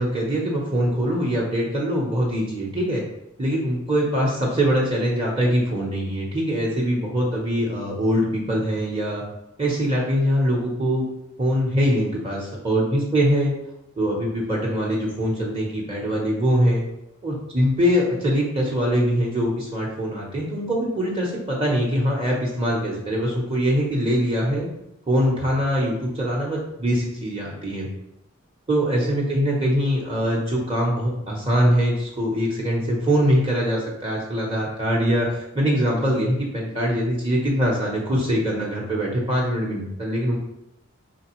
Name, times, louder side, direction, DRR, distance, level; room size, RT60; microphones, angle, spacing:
voice 1, 0.0-3.0 3.4-9.2 9.6-11.0 11.4-13.5 14.0-16.8 17.2-24.7 25.1-27.9 28.7-40.4, equal, 25° right, -3 dB, 0.8 m, -23 dB
5.2 x 3.3 x 3.0 m, 0.86 s
head